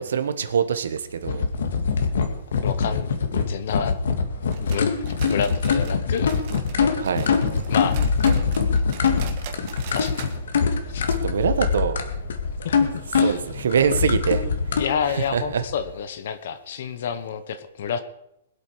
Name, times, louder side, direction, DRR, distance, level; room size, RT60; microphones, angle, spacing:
voice 1, 0.0-1.5 3.3-3.5 6.9-7.3 11.0-12.0 13.2-14.8 15.1-15.6, right 7 dB, 85° right, 10 dB, 1.4 m, -24 dB
sound 1, 1.2-14.8, left 5 dB, 80° left, 2.0 m, -23 dB
voice 2, 2.6-3.1 3.4-4.0 4.6-5.0 5.3-6.3 7.7-8.0 9.9-10.3 10.9-11.0 12.6-13.4 14.7-18.0, left 7 dB, 55° left, 11 dB, 1.1 m, -29 dB
sound 2, 4.5-6.8 7.0-10.4 10.6-10.7 11.1-11.2 11.8-11.9, right 8 dB, 40° right, 1.7 m, -41 dB
Aircraft, 5.3-15.9, right 1 dB, 20° right, 3.5 m, -40 dB
22.0 x 8.2 x 4.9 m, 0.82 s
hypercardioid pair, 165°, 0 cm